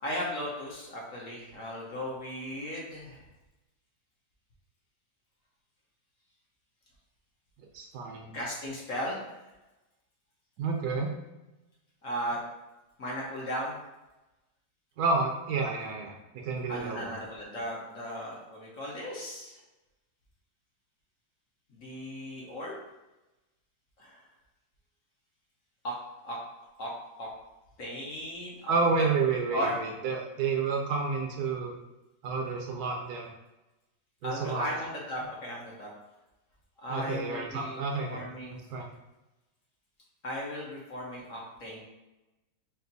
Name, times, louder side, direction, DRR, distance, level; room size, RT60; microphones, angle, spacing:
voice 1, 0.0-3.2 8.3-9.2 12.0-12.4 13.0-13.8 16.7-19.6 21.7-22.8 24.0-24.2 25.8-26.0 26.2-26.4 26.8-27.3 27.8-29.1 29.5-29.8 34.2-35.9 36.8-38.6 40.2-41.8, equal, 55° left, -4 dB, 1.3 m, -36 dB
voice 2, 7.7-8.3 10.6-11.1 15.0-17.1 28.7-31.7 32.2-33.3 34.2-34.7 36.9-38.2 38.7-38.9, right 4 dB, 70° right, 1 dB, 1.2 m, -30 dB
4.3 x 2.6 x 4.0 m, 1.0 s
omnidirectional pair, 1.8 m